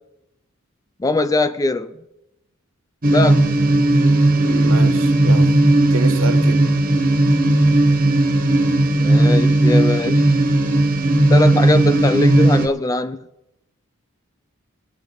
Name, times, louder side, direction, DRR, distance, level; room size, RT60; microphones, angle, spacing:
voice 1, 1.0-1.9 3.1-3.4 9.0-10.3 11.3-13.2, left 2 dB, 15° left, 0.4 m, -21 dB
sound 1, 3.0-12.7, right 1 dB, 45° right, 1.2 m, -15 dB
voice 2, 4.4-6.6, right 3 dB, 70° right, 1.3 m, -29 dB
22.0 x 9.0 x 3.9 m
head